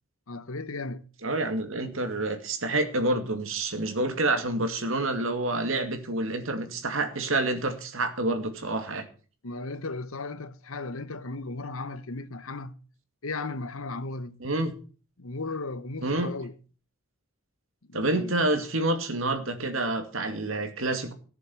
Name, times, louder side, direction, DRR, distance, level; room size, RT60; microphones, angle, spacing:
voice 1, 0.3-1.1 9.4-12.7 13.2-14.5 15.2-16.5 17.9-18.4, left 3 dB, 80° left, 1.1 m, -36 dB
voice 2, 1.2-9.1 14.4-14.7 16.0-16.3 17.9-21.1, right 2 dB, 70° right, 2.4 m, -28 dB
14.5 x 7.5 x 7.1 m
head